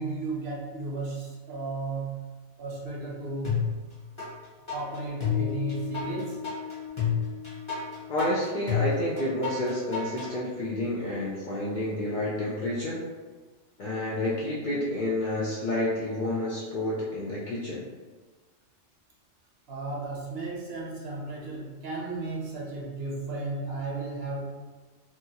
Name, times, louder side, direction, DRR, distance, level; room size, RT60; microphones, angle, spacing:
voice 1, 0.0-2.2 2.6-3.6 4.7-6.4 19.7-24.4, right 3 dB, 65° right, -3 dB, 0.8 m, -34 dB
sound 1, 3.4-4.3 4.7-10.3, left 7 dB, 30° left, 0.8 m, -30 dB
Piano, 5.2-12.0, left 10 dB, 30° right, 0.6 m, -41 dB
voice 2, 8.1-13.1 13.8-17.8, left 1 dB, 60° left, -6 dB, 0.5 m, -29 dB
2.8 x 2.3 x 2.7 m, 1.3 s
omnidirectional pair, 1.2 m